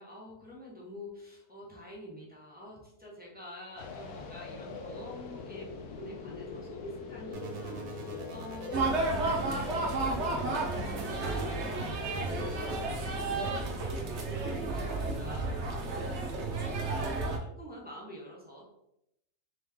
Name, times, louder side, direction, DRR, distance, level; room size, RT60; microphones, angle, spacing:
voice 1, 0.0-16.9 17.4-18.6, equal, 5° right, -5 dB, 0.9 m, -47 dB
sound 1, 3.8-10.9, left 4 dB, 85° left, 1.2 m, -42 dB
sound 2, 7.3-10.3 10.7-13.8, right 3 dB, 80° right, 1.3 m, -45 dB
sound 3, 8.7-17.4, right 2 dB, 55° right, 0.9 m, -32 dB
3.8 x 3.1 x 3.5 m, 0.80 s
omnidirectional pair, 1.6 m